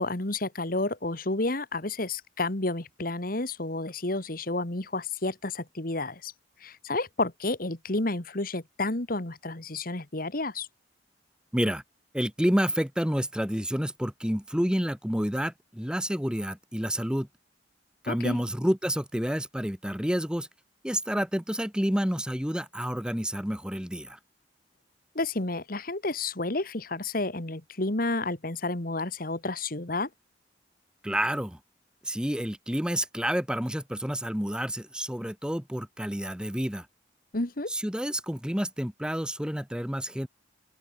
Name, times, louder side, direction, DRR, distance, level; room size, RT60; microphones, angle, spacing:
voice 1, 0.0-6.3 6.6-10.7 18.1-18.4 25.2-30.1 37.3-37.7, left 2 dB, 50° left, 2.0 m, -30 dB
voice 2, 11.5-11.8 12.1-17.3 18.0-20.5 20.8-24.2 31.0-31.6 32.0-36.9 37.7-40.3, equal, 5° right, 1.3 m, -29 dB
open air
head